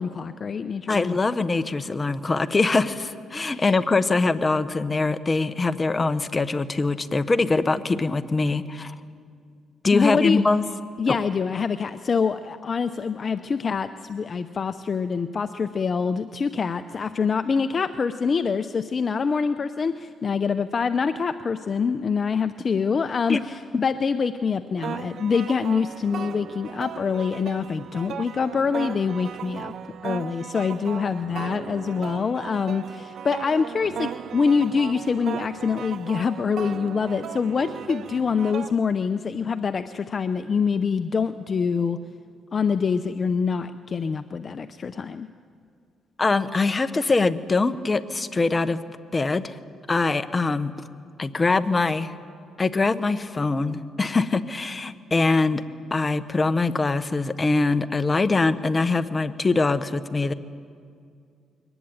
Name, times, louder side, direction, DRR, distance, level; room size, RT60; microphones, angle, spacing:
voice 1, 0.0-1.2 3.5-3.8 9.9-10.4 11.0-29.7 30.0-42.0 42.5-45.3, left 5 dB, 40° left, 10 dB, 0.6 m, -25 dB
voice 2, 0.9-8.9 9.8-10.6 11.1-11.2 23.3-23.4 46.2-48.8 49.1-49.5 49.9-50.7 51.2-52.1 52.6-55.6 55.9-60.3, left 3 dB, 25° left, 11 dB, 1.0 m, -23 dB
sound 1, 24.8-38.7, right 8 dB, 65° right, 0.6 m, -36 dB
22.5 x 19.0 x 8.9 m, 2.3 s
cardioid pair, 90°, 0 cm